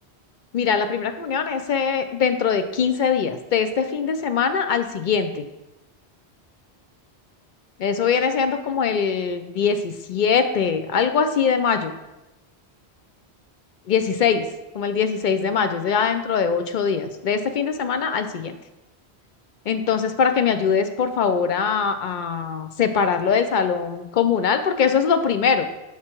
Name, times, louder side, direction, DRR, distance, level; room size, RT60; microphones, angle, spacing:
voice 1, 0.5-5.5 7.8-11.9 13.9-14.5 14.7-18.6 19.7-25.6, left 6 dB, 55° left, 9 dB, 0.6 m, -22 dB
5.9 x 4.8 x 4.4 m, 0.98 s
omnidirectional pair, 1.1 m